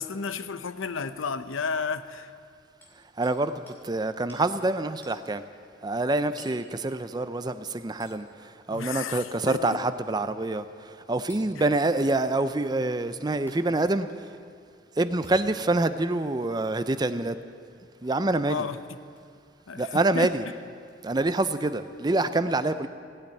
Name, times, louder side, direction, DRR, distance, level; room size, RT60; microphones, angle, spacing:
voice 1, 0.0-2.3 8.7-9.8 18.5-18.8 19.7-19.9 20.1-20.3, left 5 dB, 85° left, 12 dB, 0.7 m, -32 dB
Hammer, 2.8-3.4 3.7-3.8 4.3-4.5 5.0-5.2 6.4-6.6 8.0-8.2 9.7-9.9 11.3-11.5 13.5-13.6 15.1-15.9 16.6-16.8 18.0-18.2 19.1-19.3 20.8-20.9, equal, 10° left, 2.7 m, -52 dB
voice 2, 2.9-5.4 5.8-14.4 15.0-17.4 18.0-18.7 19.7-20.5 21.0-22.9, right 2 dB, 20° right, 11 dB, 0.5 m, -26 dB
17.0 x 8.7 x 9.1 m, 2.3 s
head